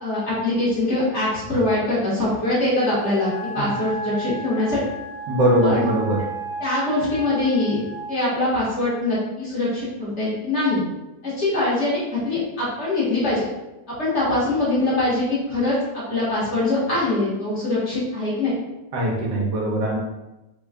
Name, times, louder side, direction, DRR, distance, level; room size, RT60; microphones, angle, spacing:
voice 1, 0.0-4.8 5.6-5.9 6.6-7.8 8.1-10.8 11.2-13.4 13.9-18.5, left 2 dB, 45° left, -8 dB, 1.3 m, -23 dB
Wind instrument woodwind instrument, 3.0-8.2, right 3 dB, 15° right, 0.9 m, -34 dB
voice 2, 5.3-6.2 18.9-20.0, right 1 dB, 75° right, -1 dB, 1.3 m, -21 dB
3.4 x 2.2 x 3.4 m, 1.0 s
omnidirectional pair, 1.9 m